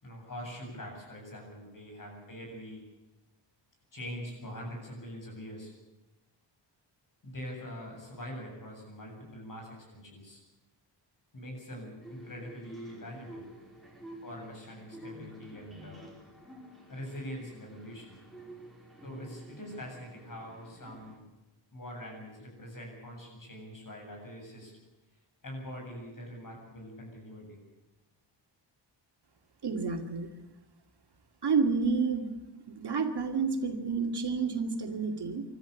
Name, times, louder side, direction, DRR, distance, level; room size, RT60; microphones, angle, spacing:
voice 1, 0.0-2.8 3.9-5.7 7.2-10.4 11.3-13.5 14.2-16.1 16.9-18.2 19.0-21.2 21.7-24.7 25.4-27.6, equal, 45° left, 2 dB, 7.9 m, -43 dB
sound 1, 12.0-21.2, equal, ahead, 4.6 m, -50 dB
voice 2, 29.6-30.3 31.4-32.3 32.7-35.4, right 5 dB, 60° right, 5 dB, 2.3 m, -29 dB
25.0 x 13.5 x 8.3 m, 1.1 s
wide cardioid pair, 170°, 45 cm